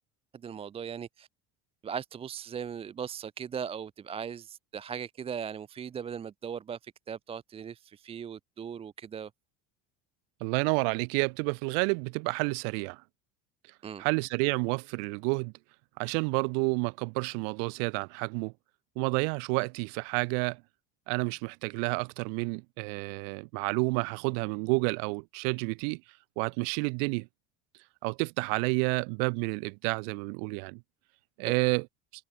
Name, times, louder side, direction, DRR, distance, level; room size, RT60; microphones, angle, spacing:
voice 1, 0.4-1.3 1.8-9.3 13.8-14.0 31.5-31.6, right 7 dB, 20° right, 0.7 m, -38 dB
voice 2, 10.4-13.0 14.0-15.5 16.0-18.5 19.0-20.6 21.1-26.0 26.4-27.3 28.0-30.8 31.4-31.9, right 40 dB or more, 70° right, 0.6 m, -30 dB
cardioid pair, 160°, 30 cm